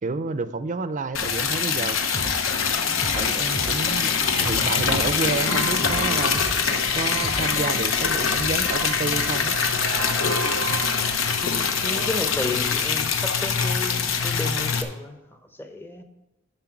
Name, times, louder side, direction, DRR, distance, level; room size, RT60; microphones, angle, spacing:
voice 1, 0.0-2.0 3.2-6.4 6.9-9.6, right 3 dB, 40° right, 0.5 m, -29 dB
Liquid, 1.1-14.8, left 6 dB, 75° left, 0.9 m, -24 dB
Drum kit / Drum, 2.1-7.7, left 1 dB, 55° left, 2.6 m, -34 dB
sound 1, 4.8-12.3, right 6 dB, 85° right, 0.8 m, -35 dB
voice 2, 11.4-16.0, left 2 dB, 10° left, 0.7 m, -33 dB
11.0 x 5.6 x 5.9 m
head